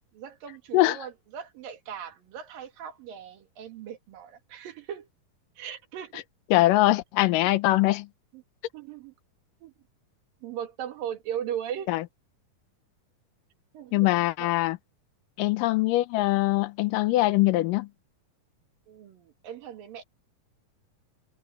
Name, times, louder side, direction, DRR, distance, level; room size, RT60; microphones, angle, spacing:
voice 1, 0.2-5.1 5.6-6.2 7.4-7.5 8.3-8.4 8.7-9.1 9.6-9.7 10.4-11.9 13.7-14.1 14.4-14.5 18.9-20.0, right 9 dB, 80° right, 3.7 m, -38 dB
voice 2, 6.5-8.1 11.9-12.0 13.9-14.8 15.4-17.9, left 18 dB, 80° left, 2.3 m, -22 dB
omnidirectional pair, 3.9 m